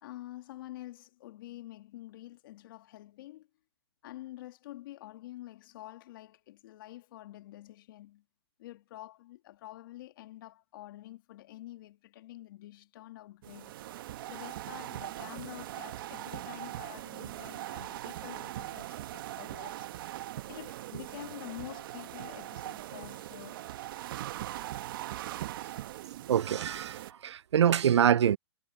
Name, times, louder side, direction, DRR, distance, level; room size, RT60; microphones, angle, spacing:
voice 1, 0.0-3.5 4.0-8.2 8.6-13.7 14.3-23.7, left 15 dB, 50° left, 2.4 m, -48 dB
sound 1, 13.4-27.1, right 14 dB, 50° right, 1.6 m, -41 dB
voice 2, 26.3-28.4, right 9 dB, 80° right, 0.5 m, -25 dB
hypercardioid pair, 135°, 14 cm